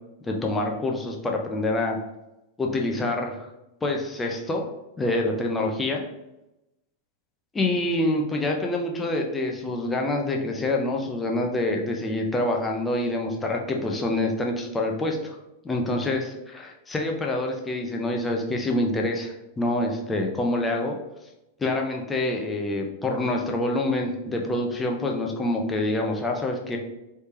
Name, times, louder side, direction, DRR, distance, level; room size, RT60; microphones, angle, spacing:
voice 1, 0.2-2.0 2.6-3.4 3.8-4.6 5.0-6.0 7.5-15.4 15.6-21.0 21.6-26.8, left 2 dB, 15° left, 1 dB, 0.6 m, -26 dB
3.3 x 3.2 x 2.9 m, 0.94 s
figure-of-eight pair, 90°, 0 cm